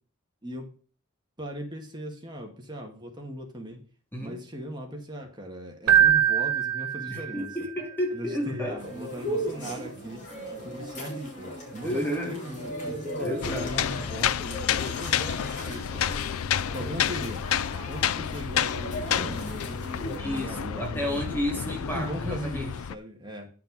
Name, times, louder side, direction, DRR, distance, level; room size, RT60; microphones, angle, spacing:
voice 1, 1.4-3.8 4.2-7.5 8.1-10.2 10.6-13.0 13.4-16.2 16.7-17.4 17.9-21.4 21.9-23.5, equal, 20° right, 2 dB, 1.9 m, -38 dB
Keyboard (musical), 5.9-7.7, right 10 dB, 80° right, 0.5 m, -22 dB
voice 2, 7.1-8.8 11.8-12.4 13.2-13.7 20.2-22.7, equal, 10° left, 2 dB, 1.6 m, -31 dB
sound 1, 8.8-20.2, equal, 35° left, 3.9 m, -37 dB
sound 2, 13.4-22.9, left 9 dB, 70° left, 0.4 m, -30 dB
10.5 x 5.8 x 5.2 m, 0.40 s
head